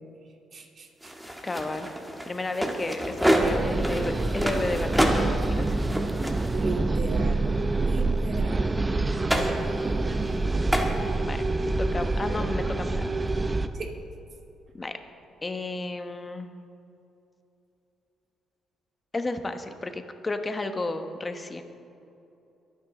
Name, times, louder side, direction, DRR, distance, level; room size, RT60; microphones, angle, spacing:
voice 1, 0.5-1.1 6.5-7.5 7.9-8.7 13.7-13.9, right 3 dB, 50° right, 2 dB, 2.1 m, -36 dB
sound 1, 1.0-6.6 9.3-9.6 10.7-10.9, equal, 5° right, 1.6 m, -28 dB
voice 2, 1.4-1.9 2.2-5.7 11.1-11.4 11.8-13.1 14.7-15.0 15.4-16.5 19.1-21.6, left 2 dB, 25° left, 7 dB, 1.1 m, -32 dB
sound 2, 3.4-13.7, right 2 dB, 25° right, 0.7 m, -27 dB
23.0 x 9.5 x 3.9 m, 2.8 s
cardioid pair, 90°, 0 cm